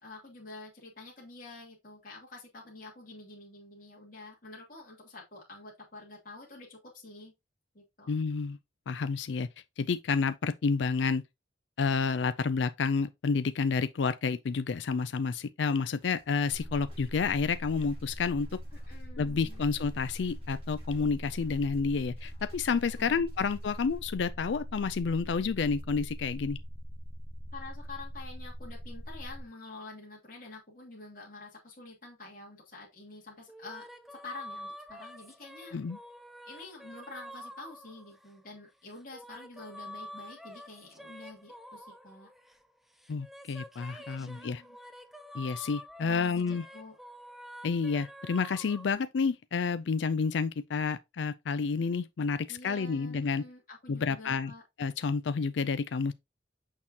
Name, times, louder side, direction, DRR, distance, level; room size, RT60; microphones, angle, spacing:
voice 1, 0.0-7.3 7.7-8.1 18.7-19.6 22.7-23.5 27.5-35.8 36.5-42.3 44.0-44.8 46.0-47.0 52.5-54.6, left 2 dB, 50° left, 2.6 m, -48 dB
voice 2, 8.1-8.6 8.9-9.5 9.8-11.2 11.8-18.5 19.2-26.6 35.7-36.0 43.1-44.6 45.3-46.6 47.6-53.4 53.9-54.5 54.8-56.1, left 5 dB, 80° left, 0.4 m, -30 dB
sound 1, 16.0-24.0, equal, 35° right, 4.2 m, -62 dB
sound 2, 16.5-29.5, equal, 35° left, 1.1 m, -42 dB
sound 3, 33.5-38.4 38.9-42.7 43.0-48.9, equal, ahead, 0.6 m, -48 dB
6.5 x 5.5 x 2.8 m
head